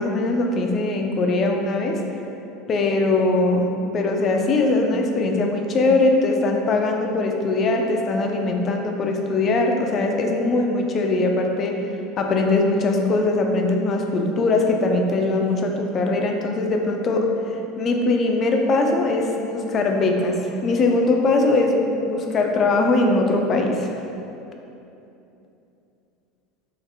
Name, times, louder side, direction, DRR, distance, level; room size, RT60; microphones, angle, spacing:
voice 1, 0.0-2.0 2.7-3.7 3.9-11.8 12.2-23.9, left 2 dB, 40° left, 2 dB, 0.3 m, -21 dB
3.3 x 2.4 x 2.6 m, 2.8 s
hypercardioid pair, 75°, 0 cm